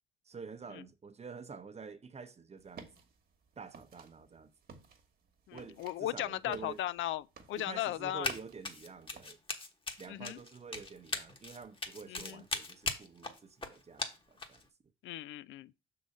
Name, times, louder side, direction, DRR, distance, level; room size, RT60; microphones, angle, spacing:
voice 1, 0.3-2.9 3.6-4.5 5.5-6.8 7.6-9.4 10.0-14.6, right 5 dB, 35° right, 0.8 m, -48 dB
sound 1, 2.6-9.3, right 5 dB, 50° right, 1.3 m, -55 dB
voice 2, 5.5-8.3 10.1-10.4 12.1-12.4 15.0-15.7, left 13 dB, 75° left, 0.4 m, -37 dB
Run, 8.2-8.4 8.6-14.6, left 3 dB, 25° left, 1.1 m, -38 dB
6.1 x 3.9 x 5.3 m
cardioid pair, 90°, 20 cm